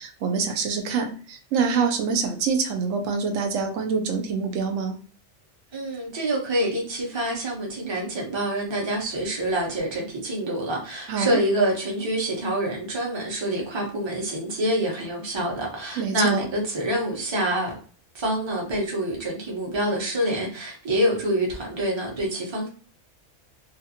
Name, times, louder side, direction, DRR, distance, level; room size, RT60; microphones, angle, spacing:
voice 1, 0.0-4.9 11.1-11.4 16.0-16.4, right 5 dB, 85° right, 5 dB, 1.0 m, -25 dB
voice 2, 5.7-17.7 18.1-22.7, right 1 dB, 25° right, -1 dB, 0.7 m, -26 dB
2.5 x 2.4 x 2.7 m, 0.42 s
omnidirectional pair, 1.3 m